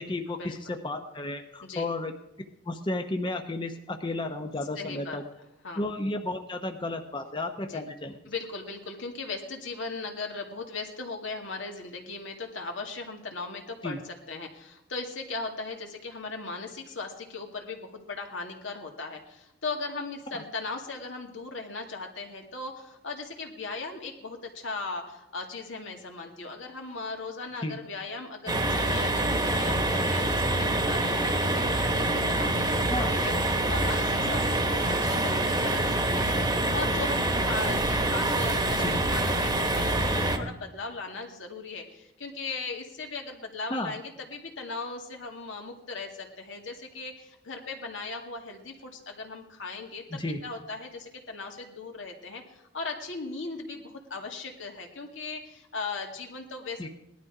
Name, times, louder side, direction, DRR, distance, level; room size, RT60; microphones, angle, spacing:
voice 1, 0.0-2.1 2.7-5.2 5.8-8.2 13.8-14.0 20.3-20.4 27.6-27.8 32.9-33.1 38.7-38.9 43.7-43.9 50.1-50.4 56.8-56.9, left 2 dB, 25° left, 4 dB, 0.8 m, -33 dB
voice 2, 4.8-5.2 5.6-5.8 7.7-7.8 8.3-33.3 33.7-35.8 36.2-56.9, left 3 dB, 80° left, 2 dB, 2.3 m, -38 dB
sound 1, 28.5-40.4, right 1 dB, 20° right, 1.3 m, -26 dB
18.5 x 12.0 x 4.9 m, 0.88 s
head